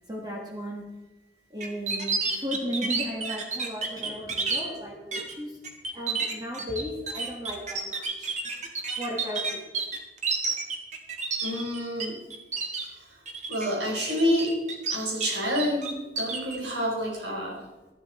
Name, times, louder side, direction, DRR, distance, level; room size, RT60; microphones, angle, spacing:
voice 1, 0.1-0.9 1.5-5.6 5.9-8.3 9.0-9.6, equal, 20° right, -1 dB, 1.7 m, -35 dB
sound 1, 1.6-4.6 5.1-5.3 5.6-12.1 12.3-12.8 13.3-13.7 14.1-15.3 15.6-16.6, right 4 dB, 40° right, 1.7 m, -30 dB
voice 2, 11.4-12.2 12.8-13.2 13.5-14.6 14.9-17.6, equal, 75° right, -2 dB, 5.0 m, -28 dB
12.5 x 11.5 x 4.4 m, 1.1 s
head